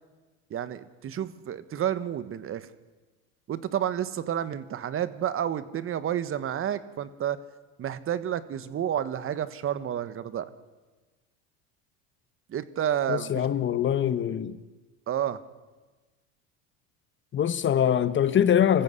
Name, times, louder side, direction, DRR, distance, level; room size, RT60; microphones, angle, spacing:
voice 1, 0.5-2.7 3.5-7.4 7.8-10.5 12.5-13.5 15.1-15.4, right 10 dB, 40° right, 1.3 m, -30 dB
voice 2, 13.1-14.6 17.3-18.8, left 9 dB, 35° left, 1.0 m, -23 dB
25.5 x 14.5 x 8.3 m
supercardioid pair, 100°, 35 cm